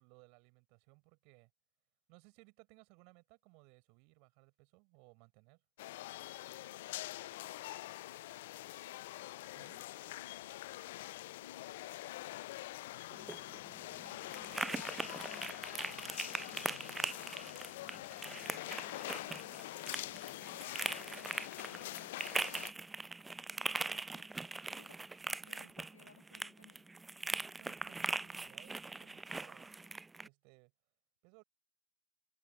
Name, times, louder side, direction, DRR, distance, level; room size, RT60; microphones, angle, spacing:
voice 1, 0.0-1.5 2.1-5.6 9.5-9.9 18.9-19.3 25.6-25.7 27.2-29.7 30.2-30.7 31.2-31.4, right 36 dB, 45° right, 7.0 m, -63 dB
sound 1, 5.8-22.7, left 17 dB, 55° left, 0.6 m, -45 dB
voice 2, 6.5-9.2 10.1-11.0 11.4-12.8 13.7-18.4 18.7-21.3 21.6-22.6 23.5-26.9, left 6 dB, 70° left, 2.4 m, -63 dB
sound 2, 13.1-30.3, right 3 dB, 10° right, 0.5 m, -41 dB
figure-of-eight pair, 90°, 0 cm